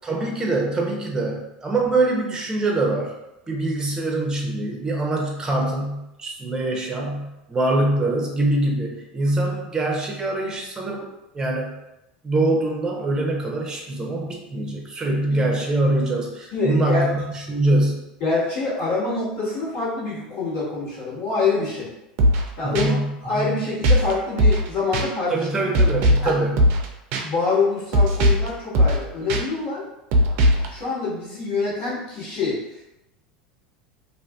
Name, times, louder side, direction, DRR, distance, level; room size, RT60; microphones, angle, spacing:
voice 1, 0.0-3.1 3.5-11.1 11.3-11.7 12.2-18.0 22.6-23.6 25.3-26.6, right 2 dB, 15° right, -1 dB, 0.6 m, -24 dB
voice 2, 15.1-15.4 16.5-17.1 18.2-21.9 22.6-25.3 26.2-26.3 27.2-29.9 30.7-32.6, left 3 dB, 60° left, -8 dB, 1.5 m, -25 dB
sound 1, 22.2-22.5 22.8-22.9 23.8-24.1 24.4-24.7 24.9-25.1 25.7-26.3 26.6-26.9 27.1-27.2 27.9-28.5 28.7-29.0 29.3-29.4 30.1-30.7, equal, 55° right, 0.4 m, -18 dB
2.5 x 2.4 x 2.3 m, 0.91 s
hypercardioid pair, 90°, 5 cm